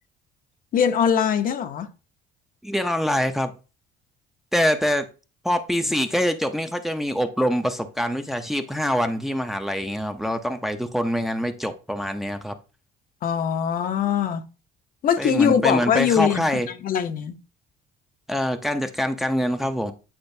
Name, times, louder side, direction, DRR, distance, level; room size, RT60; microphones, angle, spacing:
voice 1, 0.7-1.9 13.2-14.4 15.0-17.3, left 8 dB, 55° left, 0.8 m, -22 dB
voice 2, 2.6-3.5 4.5-5.1 5.4-12.6 15.2-16.7 18.3-19.9, equal, ahead, 0.6 m, -24 dB
8.8 x 4.4 x 2.7 m
cardioid pair, 110°, 17 cm